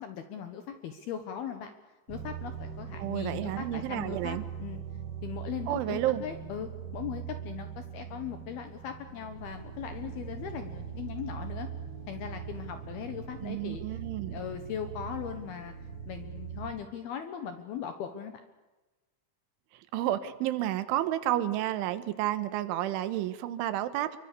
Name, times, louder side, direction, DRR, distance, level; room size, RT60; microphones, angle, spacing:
voice 1, 0.0-1.7 2.1-4.8 5.2-11.7 12.1-15.7 16.1-18.4, left 8 dB, 65° left, 8 dB, 2.8 m, -39 dB
sound 1, 2.1-16.7, right 7 dB, 65° right, 5.9 m, -41 dB
voice 2, 3.0-4.5 5.7-6.2 13.4-14.4 19.9-24.2, right 13 dB, 85° right, 12 dB, 3.7 m, -31 dB
27.0 x 24.5 x 6.9 m, 1.2 s
omnidirectional pair, 5.4 m